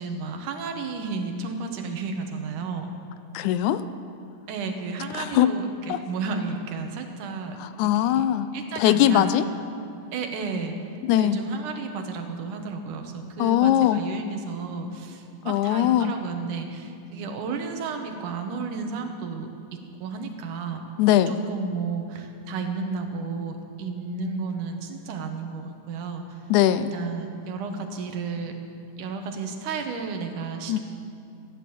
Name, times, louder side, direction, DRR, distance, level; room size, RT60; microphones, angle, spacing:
voice 1, 0.0-2.9 4.5-7.6 8.0-8.3 8.5-9.3 10.1-10.8 11.1-20.8 21.2-26.2 26.9-28.5 29.0-30.8, right 4 dB, 85° right, 5 dB, 2.6 m, -32 dB
voice 2, 3.3-3.8 5.2-5.5 5.9-6.0 7.6-8.5 8.8-9.5 11.0-11.4 13.4-14.0 15.5-16.1 21.0-21.3 26.5-26.9 30.7-30.8, left 12 dB, 80° left, 13 dB, 2.0 m, -21 dB
14.0 x 10.5 x 7.0 m, 2.5 s
omnidirectional pair, 3.5 m